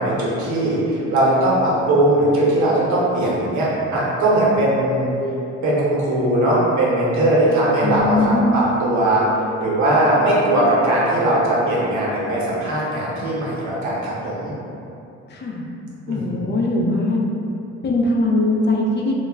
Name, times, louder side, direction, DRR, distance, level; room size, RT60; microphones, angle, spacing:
voice 1, 0.0-5.1 5.6-9.2 9.6-14.5 16.1-16.6, right 1 dB, 70° right, -7 dB, 0.9 m, -19 dB
voice 2, 7.8-8.5 15.4-15.6 16.1-17.2 17.8-19.1, left 2 dB, 35° left, -1 dB, 0.4 m, -20 dB
2.2 x 2.0 x 3.4 m, 2.7 s
cardioid pair, 90°, 30 cm